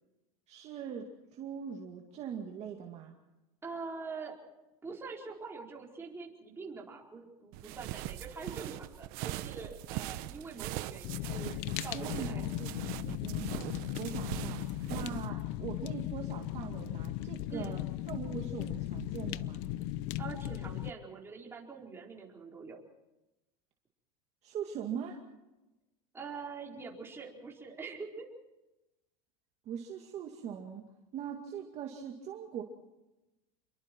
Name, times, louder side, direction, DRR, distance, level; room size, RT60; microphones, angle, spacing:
voice 1, 0.5-3.2 11.9-13.5 14.0-14.6 14.9-17.8 18.1-19.6 24.4-25.2 29.7-30.9 31.1-32.6, right 8 dB, 35° right, 1 dB, 2.2 m, -41 dB
voice 2, 3.6-4.4 4.8-12.4 17.5-17.8 20.2-22.8 26.1-28.2, right 4 dB, 10° right, -2 dB, 4.4 m, -44 dB
sound 1, 7.5-15.3, right 15 dB, 50° right, 1.0 m, -41 dB
Fire, 11.0-20.9, left 14 dB, 55° left, 0.7 m, -37 dB
28.5 x 23.0 x 4.6 m, 0.99 s
supercardioid pair, 155°, 19 cm